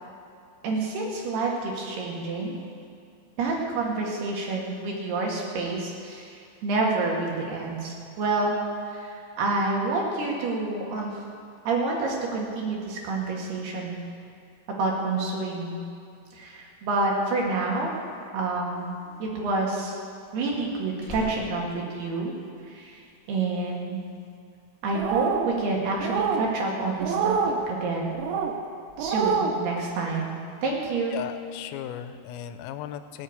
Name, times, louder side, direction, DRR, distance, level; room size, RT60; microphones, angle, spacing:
voice 1, 0.6-2.6 3.4-8.6 8.9-11.1 11.6-14.0 14.7-15.8 16.3-17.9 18.3-18.9 19.2-20.0 20.3-22.3 22.7-23.0 23.3-24.0 24.8-28.2 29.0-30.3 30.6-31.2, right 3 dB, 60° right, -2 dB, 3.5 m, -28 dB
Slam, 18.7-22.8 23.1-23.5, left 3 dB, 5° right, 4.1 m, -44 dB
sound 1, 24.9-25.5 26.0-26.4 27.0-27.6 28.2-28.5 29.0-29.5, right 6 dB, 90° right, 3.8 m, -26 dB
voice 2, 31.1-33.2, left 10 dB, 90° left, 10 dB, 3.3 m, -36 dB
18.0 x 8.0 x 8.5 m, 2.5 s
omnidirectional pair, 5.8 m